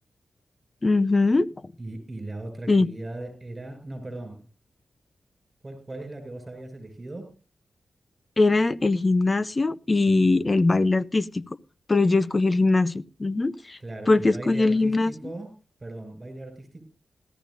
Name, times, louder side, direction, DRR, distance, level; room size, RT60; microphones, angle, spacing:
voice 1, 0.8-1.5 2.7-2.9 8.4-11.4 11.9-13.8 14.1-15.1, left 3 dB, 35° left, 0.6 m, -21 dB
voice 2, 1.8-4.5 5.6-7.4 10.2-10.4 13.8-15.5 15.8-16.8, right 2 dB, 30° right, 6.5 m, -38 dB
17.5 x 14.0 x 2.6 m
cardioid pair, 65°, 0 cm